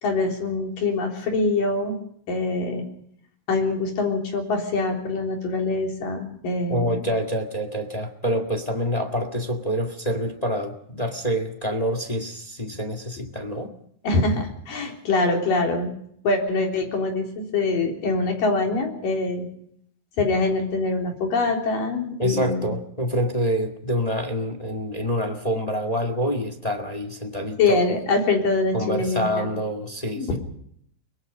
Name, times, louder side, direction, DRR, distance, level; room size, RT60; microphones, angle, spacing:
voice 1, 0.0-2.0 2.3-2.8 3.5-7.0 14.0-15.9 16.2-19.5 20.2-22.7 27.6-29.5 30.2-30.4, left 3 dB, 90° left, 1 dB, 5.3 m, -24 dB
voice 2, 6.7-13.7 22.2-27.8 28.7-30.4, equal, 20° left, 6 dB, 1.3 m, -26 dB
23.5 x 22.0 x 5.3 m, 0.69 s
omnidirectional pair, 3.8 m